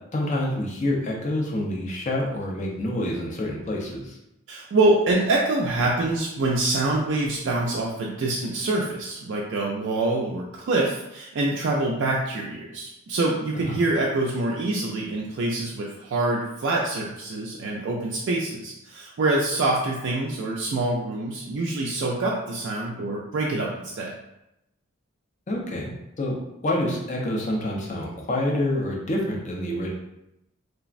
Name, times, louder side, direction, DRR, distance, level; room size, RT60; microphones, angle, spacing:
voice 1, 0.1-4.2 13.5-13.9 25.5-25.9 26.2-26.4 26.6-29.9, left 1 dB, 35° left, -1 dB, 0.5 m, -27 dB
voice 2, 4.5-24.1, right 2 dB, 55° right, -2 dB, 0.3 m, -25 dB
3.3 x 2.0 x 2.4 m, 0.86 s
head